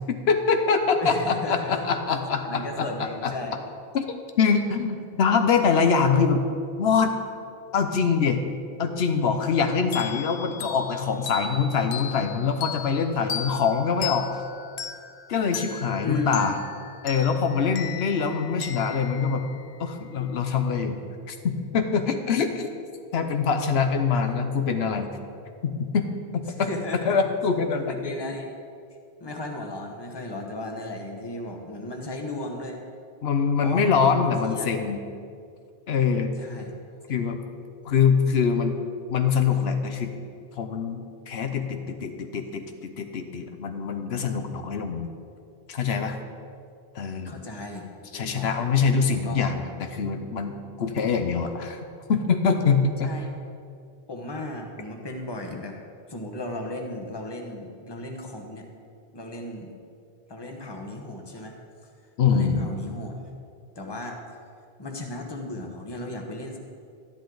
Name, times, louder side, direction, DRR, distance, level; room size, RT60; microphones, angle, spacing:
voice 1, 0.1-3.3 3.9-4.1 4.4-6.5 6.8-7.1 7.7-8.4 8.8-14.3 15.3-16.6 17.0-19.5 19.8-21.0 21.3-22.7 23.1-25.1 25.6-26.1 26.3-26.7 27.1-28.1 33.2-35.0 35.9-36.3 37.1-37.4 37.8-38.8 39.1-40.1 40.6-45.1 45.7-46.2 46.9-47.4 48.1-51.8 52.1-53.1 62.2-62.6, left 5 dB, 85° left, 6 dB, 1.0 m, -24 dB
voice 2, 1.0-1.9 2.4-3.6 16.0-16.4 24.1-24.4 26.5-27.2 27.9-28.5 29.2-32.8 33.6-34.7 36.4-36.8 37.1-37.3 47.2-47.9 48.1-48.6 49.2-49.5 53.0-53.3 54.1-55.8 56.1-58.7 59.1-59.7 60.3-61.6 62.3-63.3 63.8-64.2 64.8-66.6, left 1 dB, 25° left, 2 dB, 1.1 m, -35 dB
sound 1, 9.9-20.2, left 8 dB, 65° left, 0.8 m, -37 dB
12.5 x 10.5 x 3.9 m, 2.3 s
omnidirectional pair, 1.0 m